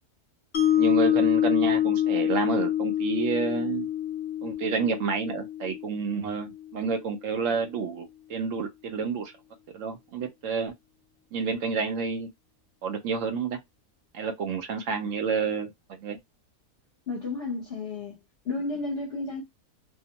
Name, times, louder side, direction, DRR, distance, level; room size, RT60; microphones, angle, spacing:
Mallet percussion, 0.5-6.7, left 11 dB, 65° left, 0.8 m, -26 dB
voice 1, 0.8-3.9 4.4-9.3 9.7-10.7 11.3-12.3 12.8-13.6 14.1-16.2, right 5 dB, 70° right, 0.8 m, -29 dB
voice 2, 17.1-18.1 18.4-19.4, left 3 dB, 45° left, 1.1 m, -32 dB
2.8 x 2.1 x 2.8 m
omnidirectional pair, 1.7 m